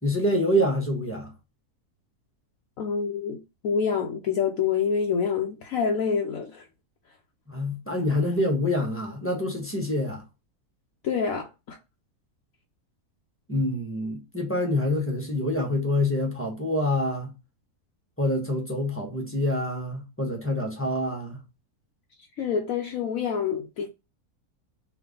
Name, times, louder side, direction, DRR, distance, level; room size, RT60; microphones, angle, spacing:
voice 1, 0.0-1.3 7.5-10.2 13.5-17.3 18.2-21.4, left 1 dB, 10° left, 1.0 m, -26 dB
voice 2, 2.8-3.4 3.6-6.6 11.0-11.8 22.4-23.9, left 6 dB, 70° left, 1.1 m, -27 dB
3.5 x 3.3 x 3.8 m
omnidirectional pair, 1.6 m